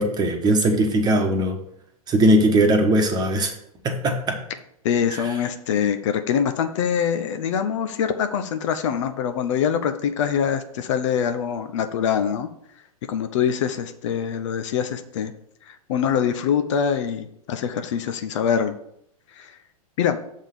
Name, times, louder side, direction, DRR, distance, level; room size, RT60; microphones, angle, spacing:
voice 1, 0.0-1.6 2.1-3.5 3.8-4.4 5.1-5.2, right 1 dB, 20° right, 4 dB, 1.2 m, -19 dB
voice 2, 4.8-12.5 13.1-15.3 15.7-18.7 19.4-19.5 20.0-20.2, left 8 dB, 55° left, 9 dB, 0.7 m, -24 dB
7.3 x 3.7 x 6.5 m, 0.73 s
figure-of-eight pair, 105°, 19 cm